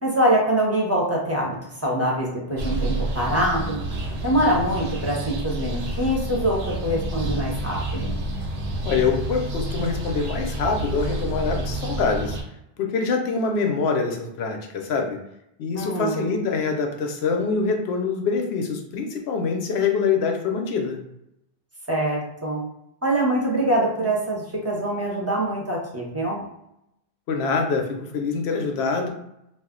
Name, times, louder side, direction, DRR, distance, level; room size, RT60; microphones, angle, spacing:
voice 1, 0.0-3.8 4.2-8.2 15.7-16.3 21.9-22.6 23.0-26.5, right 1 dB, 15° right, -4 dB, 0.7 m, -24 dB
sound 1, 2.6-12.4, right 1 dB, 80° right, 0.9 m, -29 dB
voice 2, 8.8-12.4 12.8-15.2 15.6-21.0 27.3-29.1, left 4 dB, 80° left, 3 dB, 0.8 m, -25 dB
2.4 x 2.0 x 3.6 m, 0.82 s
omnidirectional pair, 1.1 m